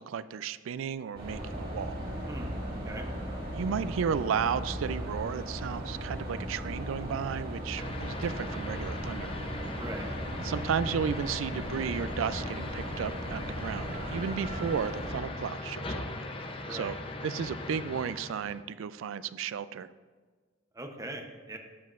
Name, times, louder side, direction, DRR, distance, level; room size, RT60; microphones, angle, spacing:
voice 1, 0.0-2.0 3.5-9.3 10.4-16.1 16.4-17.0 17.2-19.9, right 7 dB, 85° right, 15 dB, 0.3 m, -33 dB
sound 1, 1.2-15.1, equal, 50° right, 1.8 m, -37 dB
voice 2, 2.3-3.1 9.8-10.1 16.7-16.9 20.7-21.6, right 1 dB, 15° right, 3 dB, 0.7 m, -41 dB
sound 2, 7.8-18.6, left 2 dB, 25° left, 0.6 m, -39 dB
12.5 x 7.7 x 2.5 m, 1.5 s
head